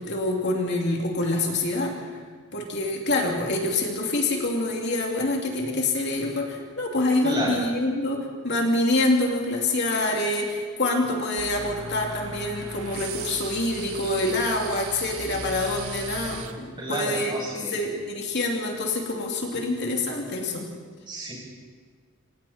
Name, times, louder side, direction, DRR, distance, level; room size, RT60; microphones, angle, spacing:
voice 1, 0.0-2.0 2.5-17.3 17.7-20.7, left 2 dB, 50° left, 0 dB, 2.9 m, -26 dB
voice 2, 7.2-7.6 16.8-17.8 21.1-21.3, right 1 dB, 20° right, -4 dB, 7.8 m, -30 dB
sound 1, 11.4-16.5, right 3 dB, 85° right, 1.9 m, -37 dB
29.0 x 26.5 x 4.4 m, 1.5 s
head